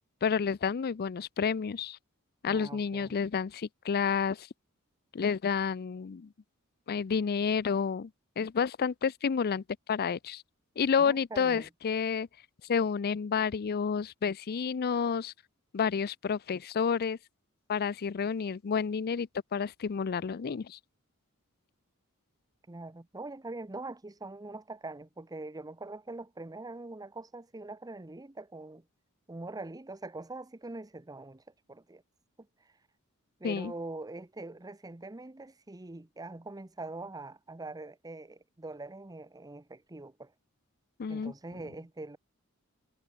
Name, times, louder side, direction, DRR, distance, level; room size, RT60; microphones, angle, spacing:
voice 1, 0.2-2.0 2.4-4.5 5.1-6.3 6.9-8.1 8.4-10.4 10.8-12.3 12.7-15.3 15.7-17.2 17.7-20.8 33.4-33.7 41.0-41.3, left 6 dB, 45° left, 0.4 m, -30 dB
voice 2, 2.5-3.2 11.0-11.7 22.7-28.8 29.3-31.4 31.7-32.0 33.4-40.3 41.1-42.2, right 2 dB, 15° right, 0.8 m, -43 dB
head